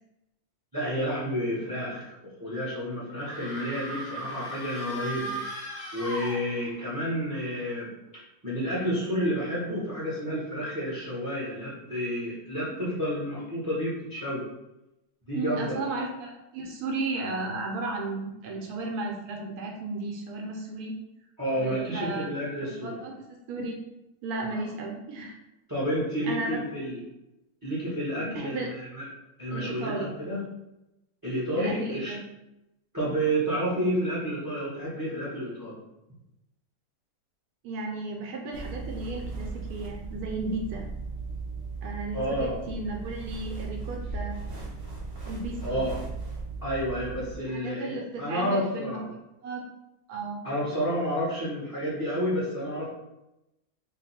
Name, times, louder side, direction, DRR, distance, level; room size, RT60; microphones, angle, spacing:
voice 1, 0.7-5.6 5.9-14.4 15.2-15.9 21.4-23.0 25.7-27.0 27.6-29.0 29.4-30.4 31.2-32.1 32.9-35.8 42.1-42.5 45.6-46.0 46.6-49.1 50.4-52.9, equal, 20° right, -9 dB, 0.6 m, -30 dB
sound 1, 3.2-6.9, right 1 dB, 55° left, 0.6 m, -37 dB
voice 2, 15.3-21.0 21.6-22.3 22.6-23.1 23.5-23.8 24.2-25.4 26.3-26.6 28.1-28.7 29.5-30.2 31.6-32.2 37.6-40.9 41.8-44.4 45.3-45.9 47.4-49.6 50.1-50.4, right 3 dB, 80° right, 1 dB, 1.1 m, -34 dB
sound 2, 38.5-47.4, right 3 dB, 45° right, 0.9 m, -37 dB
2.6 x 2.3 x 4.1 m, 0.93 s
omnidirectional pair, 1.6 m